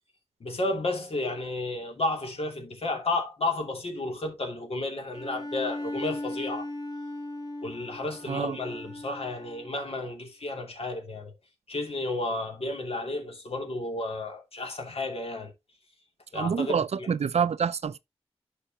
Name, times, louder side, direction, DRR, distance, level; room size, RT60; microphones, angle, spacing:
voice 1, 0.4-6.7 7.6-11.3 11.7-15.5 16.3-17.1, left 2 dB, 65° left, 2.7 m, -32 dB
Bowed string instrument, 5.1-9.8, left 1 dB, 40° left, 2.3 m, -38 dB
voice 2, 16.4-18.0, right 6 dB, 85° right, 0.5 m, -27 dB
11.5 x 4.9 x 2.9 m
wide cardioid pair, 75°, 11 cm